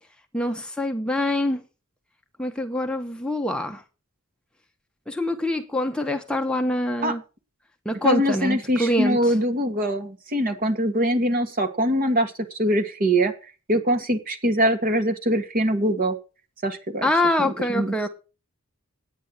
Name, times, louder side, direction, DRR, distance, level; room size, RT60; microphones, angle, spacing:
voice 1, 0.3-1.6 2.4-3.8 5.1-7.2 7.8-9.2 17.0-18.1, left 1 dB, 5° left, 0.8 m, -25 dB
voice 2, 8.0-12.3 12.6-13.3 13.7-16.2 16.6-17.1 17.4-17.9, equal, 40° right, 1.7 m, -23 dB
9.4 x 9.2 x 6.4 m
head